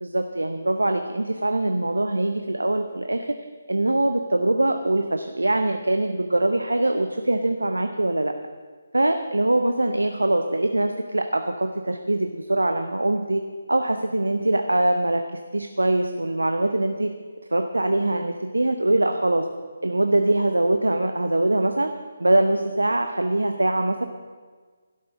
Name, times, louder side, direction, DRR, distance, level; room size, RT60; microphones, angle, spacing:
voice 1, 0.0-3.4 3.7-8.3 8.9-13.4 13.7-15.2 15.5-17.1 17.5-19.5 19.8-21.9 22.2-24.1, right 1 dB, 80° right, 7 dB, 0.8 m, -23 dB
12.0 x 12.0 x 6.3 m, 1.5 s
figure-of-eight pair, 145°, 0 cm